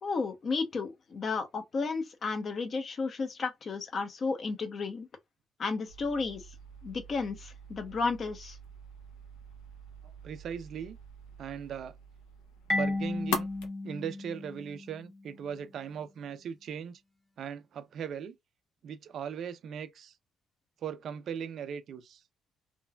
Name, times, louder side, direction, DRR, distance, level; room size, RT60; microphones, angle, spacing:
voice 1, 0.0-5.1 5.6-6.5 6.8-8.6, left 4 dB, 50° left, 0.8 m, -33 dB
sound 1, 5.9-13.7, left 3 dB, 85° left, 0.6 m, -43 dB
voice 2, 10.0-11.0 11.4-12.0 12.7-13.5 13.8-17.0 17.4-18.4 18.8-20.2 20.8-22.2, right 8 dB, 65° right, 0.5 m, -39 dB
Marimba xylophone, 12.7-15.3, left 2 dB, 10° left, 0.7 m, -34 dB
3.1 x 2.3 x 2.2 m
supercardioid pair, 60°, 0 cm